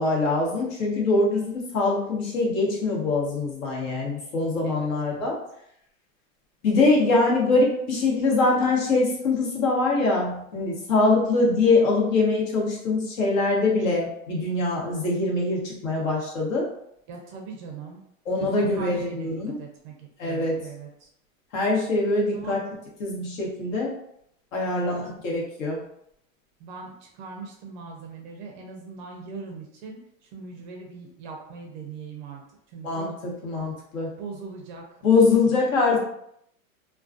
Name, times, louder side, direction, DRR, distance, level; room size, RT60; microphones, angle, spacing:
voice 1, 0.0-5.4 6.6-16.7 18.3-19.5 20.2-20.6 21.5-22.6 23.0-23.9 24.5-25.8 32.8-34.1 35.0-36.0, left 3 dB, 70° left, -3 dB, 1.1 m, -23 dB
voice 2, 4.6-5.3 17.1-18.0 18.3-21.1 22.3-22.6 24.7-25.0 26.6-32.4 32.7-33.1 34.2-34.8 35.3-35.6, right 5 dB, 35° right, 1 dB, 0.4 m, -40 dB
2.3 x 2.2 x 2.4 m, 0.73 s
supercardioid pair, 140°, 41 cm